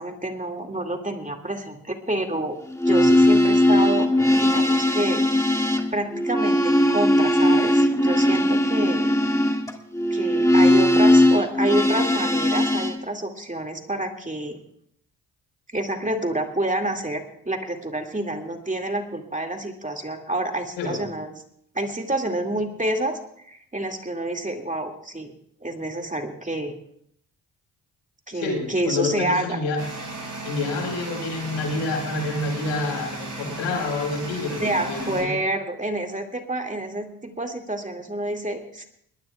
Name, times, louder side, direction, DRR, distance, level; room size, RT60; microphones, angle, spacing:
voice 1, 0.0-2.6 2.9-4.1 4.3-5.2 5.9-9.1 10.1-14.6 15.7-21.3 21.7-23.2 23.5-25.3 25.6-26.7 28.3-29.6 34.5-38.8, right 1 dB, 15° right, 3 dB, 2.3 m, -28 dB
sound 1, 2.7-13.0, left 1 dB, 5° left, 2.0 m, -19 dB
voice 2, 28.3-29.8 30.4-35.3, left 3 dB, 85° left, 1 dB, 4.8 m, -28 dB
sound 2, 29.8-35.2, right 2 dB, 40° right, 7.4 m, -35 dB
21.0 x 19.5 x 2.4 m, 0.69 s
hypercardioid pair, 45°, 45 cm